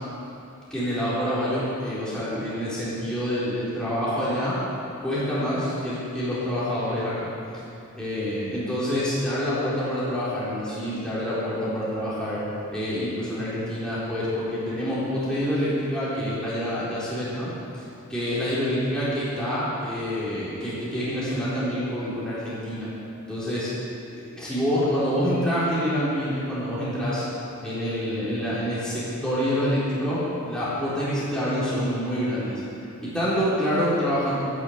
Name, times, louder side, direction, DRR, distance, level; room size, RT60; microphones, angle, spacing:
voice 1, 0.7-4.6 5.0-7.3 7.9-12.4 12.7-17.8 18.1-22.9 23.3-23.7 24.3-27.3 27.6-32.6 33.0-34.3, equal, 5° left, -11 dB, 3.9 m, -27 dB
11.5 x 11.0 x 8.0 m, 2.7 s
head